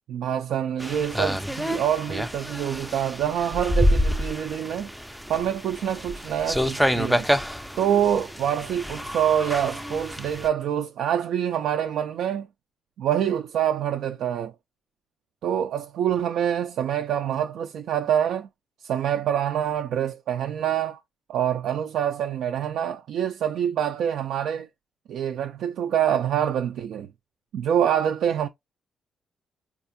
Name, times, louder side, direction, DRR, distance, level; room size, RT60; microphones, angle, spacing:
voice 1, 0.1-4.9 5.3-7.3 7.8-12.5 13.0-14.5 15.4-18.5 18.8-21.0 21.3-24.7 25.1-27.1 27.5-28.5, right 9 dB, 75° right, 0.4 m, -26 dB
sound 1, 0.8-10.5, equal, ahead, 0.4 m, -27 dB
4.3 x 2.4 x 2.6 m
cardioid pair, 90°, 0 cm